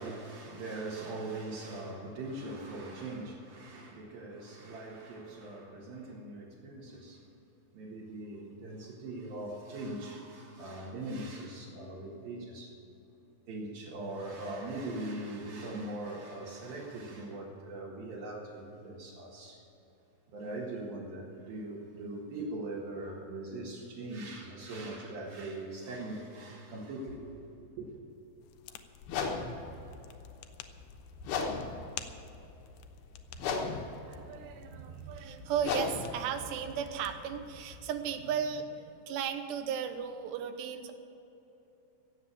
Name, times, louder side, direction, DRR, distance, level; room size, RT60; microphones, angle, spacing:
voice 1, 0.0-7.2 7.7-12.7 13.5-19.6 20.3-27.4 27.8-27.9, right 2 dB, 65° right, -5 dB, 3.3 m, -41 dB
sound 1, 28.4-38.1, left 11 dB, 90° left, 2.9 m, -53 dB
sound 2, 29.0-37.8, left 4 dB, 70° left, 3.1 m, -38 dB
voice 2, 33.5-40.9, right 7 dB, 85° right, 8 dB, 3.1 m, -36 dB
17.0 x 7.6 x 8.6 m, 3.0 s
omnidirectional pair, 4.8 m